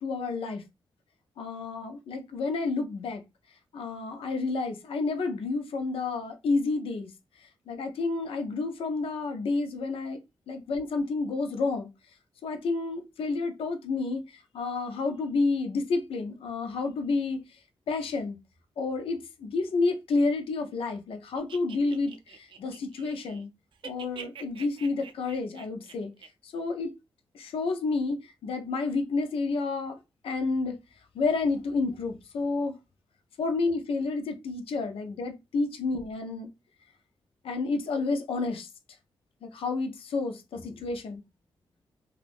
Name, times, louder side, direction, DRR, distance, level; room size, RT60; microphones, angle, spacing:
voice 1, 0.0-0.6 1.4-3.2 3.7-7.1 7.7-10.2 10.5-11.9 12.4-17.4 17.9-18.4 18.8-23.5 23.8-26.1 26.4-26.9 27.3-30.0 30.2-30.8 31.1-32.8 33.4-36.5 37.4-38.7 39.4-41.2, left 3 dB, 85° left, 0.5 m, -30 dB
sound 1, 21.4-23.5 23.7-26.3, right 6 dB, 65° right, 0.4 m, -46 dB
2.4 x 2.4 x 3.4 m
cardioid pair, 100°, 9 cm